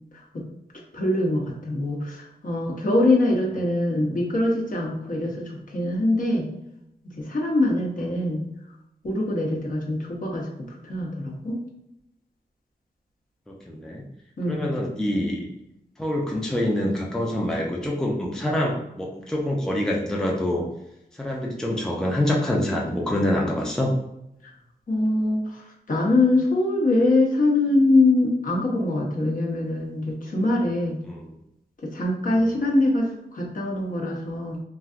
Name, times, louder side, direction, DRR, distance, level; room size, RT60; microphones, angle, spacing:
voice 1, 0.9-6.5 7.2-8.4 9.0-10.5 10.8-11.6 14.4-14.7 24.9-31.0 31.8-34.6, left 2 dB, 50° left, -2 dB, 0.8 m, -23 dB
voice 2, 13.5-14.0 14.5-15.4 16.0-20.7 21.1-23.9 31.0-31.3 32.3-32.4, left 1 dB, 5° left, -2 dB, 0.5 m, -26 dB
3.2 x 2.6 x 2.4 m, 0.84 s
wide cardioid pair, 80°, 17 cm